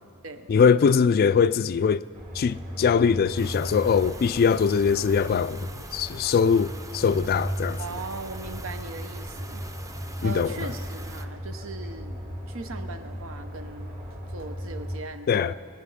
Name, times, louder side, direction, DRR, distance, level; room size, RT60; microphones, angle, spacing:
voice 1, 0.5-2.0 2.4-7.8 10.2-10.6 15.3-15.5, left 6 dB, 45° left, 0.3 m, -22 dB
sound 1, 2.1-15.0, equal, 45° right, 2.3 m, -36 dB
sound 2, 3.4-11.3, right 2 dB, 15° right, 0.6 m, -44 dB
voice 2, 7.8-9.6 10.2-15.5, right 3 dB, 80° right, 0.9 m, -39 dB
21.5 x 11.5 x 5.6 m
head